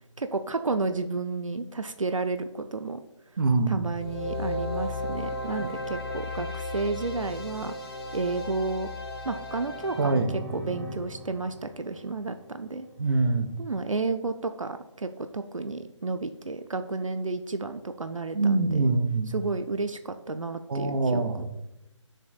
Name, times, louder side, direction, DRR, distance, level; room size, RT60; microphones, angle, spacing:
voice 1, 0.2-3.0 3.7-7.7 8.1-8.9 9.3-10.2 10.5-12.9 13.6-18.8 19.3-21.4, right 3 dB, 80° right, 9 dB, 0.5 m, -31 dB
voice 2, 3.4-3.8 5.6-5.7 10.0-10.3 13.0-13.5 18.3-19.3 20.7-21.4, right 3 dB, 45° right, 9 dB, 0.7 m, -24 dB
sound 1, 3.9-10.1, left 2 dB, 50° left, 1.4 m, -35 dB
sound 2, 9.6-13.3, right 1 dB, 5° right, 0.7 m, -43 dB
10.0 x 6.3 x 2.4 m, 0.91 s
figure-of-eight pair, 145°, 16 cm